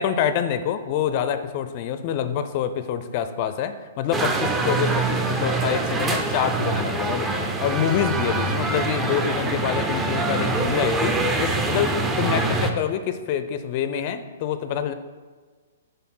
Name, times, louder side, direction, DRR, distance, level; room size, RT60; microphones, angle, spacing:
voice 1, 0.0-14.9, left 9 dB, 40° left, 11 dB, 0.4 m, -26 dB
sound 1, 4.1-12.7, right 3 dB, 15° right, 0.6 m, -24 dB
5.2 x 4.2 x 5.5 m, 1.4 s
figure-of-eight pair, 115°, 0 cm